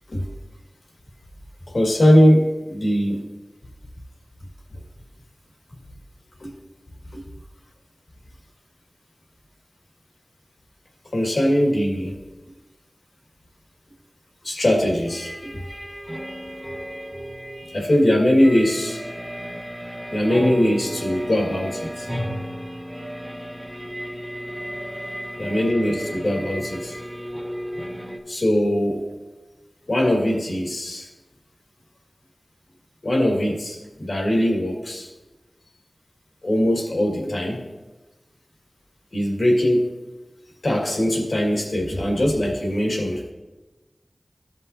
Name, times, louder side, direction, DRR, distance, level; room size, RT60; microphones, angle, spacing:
voice 1, 1.7-3.2 6.4-6.5 7.1-7.2 11.1-12.1 14.4-15.6 17.7-19.0 20.1-22.1 25.4-27.0 28.3-29.1 29.9-31.1 33.0-35.1 36.4-37.6 39.1-39.9 40.6-43.2, equal, 65° left, -1 dB, 1.8 m, -21 dB
sound 1, 15.1-28.2, equal, 5° right, 0.8 m, -33 dB
13.5 x 5.5 x 2.7 m, 1.1 s
wide cardioid pair, 50°, 0 cm